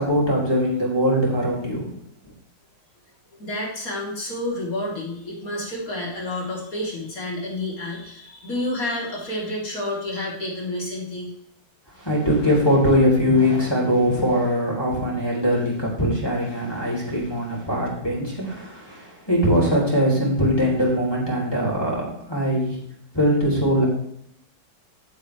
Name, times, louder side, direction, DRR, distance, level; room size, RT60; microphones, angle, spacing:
voice 1, 0.0-1.9 11.9-22.8 23.1-23.9, equal, 10° left, -5 dB, 3.7 m, -21 dB
voice 2, 3.4-11.3, left 1 dB, 45° left, -4 dB, 4.0 m, -29 dB
15.5 x 8.0 x 3.4 m, 0.69 s
omnidirectional pair, 2.1 m